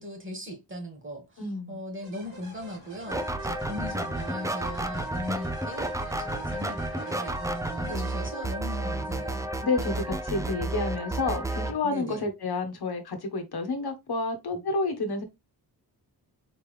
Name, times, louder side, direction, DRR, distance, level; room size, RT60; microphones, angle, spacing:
voice 1, 0.0-9.5 11.8-12.2, equal, 30° right, 1.8 m, -39 dB
voice 2, 1.4-1.8 5.2-5.3 7.9-8.2 9.6-15.2, left 3 dB, 75° left, 1.2 m, -30 dB
sound 1, 2.0-8.9, right 2 dB, 55° right, 2.4 m, -51 dB
sound 2, 2.2-7.3, left 3 dB, 25° left, 1.0 m, -51 dB
sound 3, 3.1-11.7, right 1 dB, 10° right, 0.5 m, -31 dB
4.4 x 3.4 x 3.2 m
wide cardioid pair, 130°, 39 cm